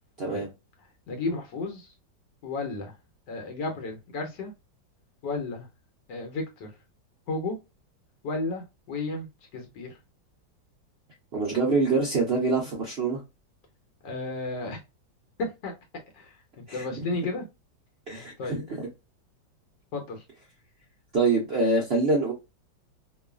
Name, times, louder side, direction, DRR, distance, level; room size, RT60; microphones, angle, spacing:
voice 1, 1.1-1.9 2.4-2.9 3.3-4.5 5.2-5.7 6.1-6.7 7.3-7.6 8.2-10.0 14.0-14.8 15.4-15.7 16.1-17.4 18.4-18.6 19.9-20.2, left 2 dB, 70° left, 1.4 m, -33 dB
voice 2, 11.3-13.2 16.7-16.8 18.1-18.9 21.1-22.3, right 3 dB, 70° right, 0.6 m, -25 dB
3.1 x 2.3 x 2.2 m
omnidirectional pair, 2.0 m